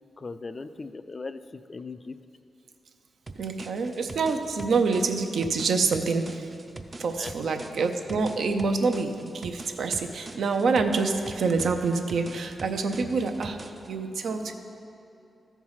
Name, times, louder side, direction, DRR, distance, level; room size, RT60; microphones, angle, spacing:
voice 1, 0.2-2.2 7.2-7.3 7.6-7.7, left 3 dB, 35° left, 11 dB, 0.3 m, -39 dB
sound 1, 3.3-13.9, right 2 dB, 30° right, 0.5 m, -44 dB
voice 2, 3.4-6.5 7.0-13.6 13.9-14.5, right 4 dB, 80° right, 5 dB, 0.6 m, -26 dB
13.5 x 4.7 x 5.6 m, 2.7 s
wide cardioid pair, 105°, 0 cm